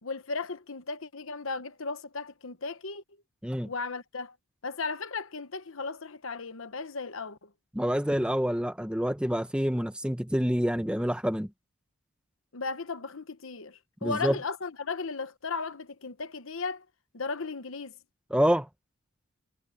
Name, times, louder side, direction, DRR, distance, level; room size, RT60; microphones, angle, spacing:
voice 1, 0.0-3.0 3.6-4.3 4.6-7.5 12.5-16.8 17.1-17.9, left 4 dB, 65° left, 1.0 m, -36 dB
voice 2, 7.7-11.5 14.0-14.4 18.3-18.7, equal, 5° right, 1.2 m, -27 dB
head